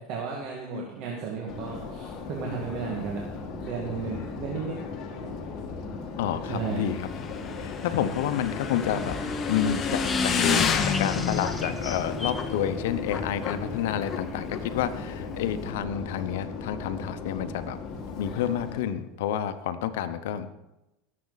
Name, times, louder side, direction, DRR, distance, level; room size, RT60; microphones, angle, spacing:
voice 1, 0.1-3.2 3.5-4.8 5.1-5.3 6.5-6.8, right 6 dB, 60° right, -1 dB, 2.0 m, -34 dB
Subway metro underground, 1.5-18.8, left 4 dB, 45° left, 1.9 m, -37 dB
voice 2, 6.2-7.3 7.6-9.2 9.5-17.8 18.1-20.5, left 10 dB, 80° left, 11 dB, 0.8 m, -29 dB
Motorcycle / Engine, 6.5-15.7, left 6 dB, 30° left, 1.1 m, -30 dB
sound 1, 8.2-13.2, left 2 dB, 5° left, 0.9 m, -40 dB
18.0 x 7.6 x 4.1 m, 0.96 s
supercardioid pair, 125°, 0 cm